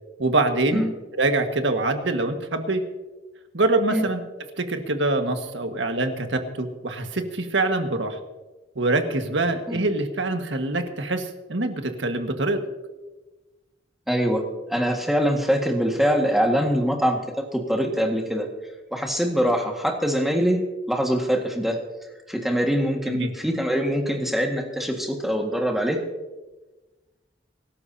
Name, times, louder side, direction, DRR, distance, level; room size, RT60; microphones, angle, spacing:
voice 1, 0.2-0.9 1.2-2.8 3.5-4.2 4.6-8.2 8.7-12.6 23.1-23.3, right 2 dB, 85° right, 5 dB, 1.7 m, -24 dB
voice 2, 14.1-14.4 14.7-18.5 18.9-20.6 20.9-21.8 22.3-26.0, equal, ahead, 1 dB, 1.8 m, -23 dB
25.5 x 13.0 x 2.8 m, 1.2 s
head